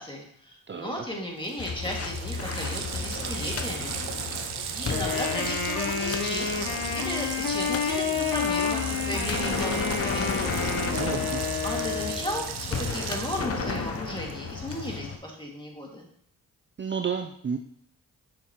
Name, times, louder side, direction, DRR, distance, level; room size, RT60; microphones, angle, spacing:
voice 1, 0.0-4.0 4.7-10.5 11.6-16.1, left 1 dB, 15° left, -1 dB, 2.1 m, -35 dB
voice 2, 0.7-1.0 10.8-11.4 16.8-17.6, right 6 dB, 30° right, 5 dB, 0.5 m, -31 dB
Water tap faucet, 1.1-1.2 1.4-15.2, right 8 dB, 85° right, 0.7 m, -37 dB
sound 1, 1.6-15.2, left 4 dB, 40° left, 0.8 m, -34 dB
Wind instrument woodwind instrument, 4.9-12.5, left 6 dB, 70° left, 0.8 m, -30 dB
6.4 x 6.1 x 3.0 m, 0.66 s
cardioid pair, 50°, 38 cm